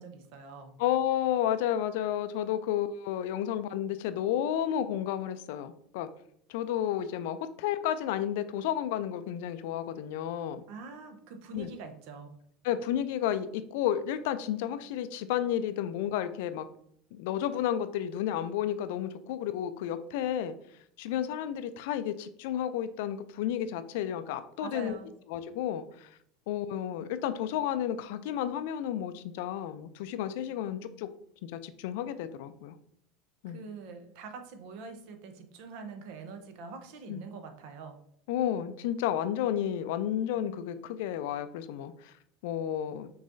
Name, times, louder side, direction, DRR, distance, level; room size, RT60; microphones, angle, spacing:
voice 1, 0.0-0.7 10.7-12.4 24.6-25.1 33.5-38.0, right 4 dB, 60° right, 7 dB, 0.8 m, -44 dB
voice 2, 0.8-6.1 6.5-10.6 11.5-11.7 12.6-16.7 17.1-20.5 21.0-25.0 25.3-26.1 26.5-31.1 31.4-32.7 33.4-33.6 37.1-37.2 38.3-42.1 42.4-43.1, left 10 dB, 65° left, 11 dB, 0.4 m, -32 dB
6.3 x 3.1 x 2.6 m, 0.69 s
figure-of-eight pair, 75°, 0 cm